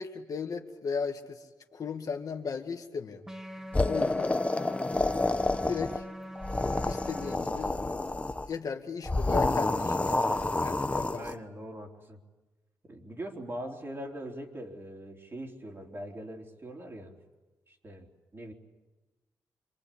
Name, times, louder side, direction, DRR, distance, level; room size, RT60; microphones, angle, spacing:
voice 1, 0.0-1.4 1.7-3.2 3.8-4.3 5.2-6.0 6.8-7.7 8.5-11.3, left 5 dB, 55° left, 4 dB, 1.9 m, -36 dB
sound 1, 3.3-7.4, equal, 5° right, 1.7 m, -43 dB
sound 2, 3.7-6.0 6.3-8.5 9.0-11.3, left 2 dB, 15° left, 1.0 m, -29 dB
voice 2, 11.2-12.2 12.8-17.2 17.7-18.5, right 1 dB, 35° right, 1 dB, 3.7 m, -42 dB
26.5 x 23.0 x 8.6 m, 1.1 s
cardioid pair, 105°, 7 cm